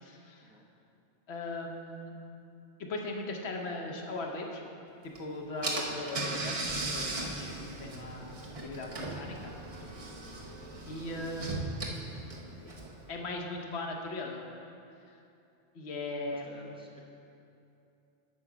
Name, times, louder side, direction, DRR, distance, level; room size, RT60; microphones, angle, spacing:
voice 1, 0.0-0.5 1.3-2.1 2.8-4.6 5.0-7.5 7.8-9.5 10.9-11.8 13.1-14.5 15.1-15.2 15.7-16.7, left 2 dB, 70° left, 1 dB, 1.2 m, -39 dB
Car / Engine, 5.1-5.2 5.6-13.1, right 2 dB, 35° right, 0.9 m, -37 dB
voice 2, 16.3-17.0, right 1 dB, 5° right, -3 dB, 0.9 m, -54 dB
8.4 x 5.8 x 5.0 m, 2.7 s
omnidirectional pair, 1.2 m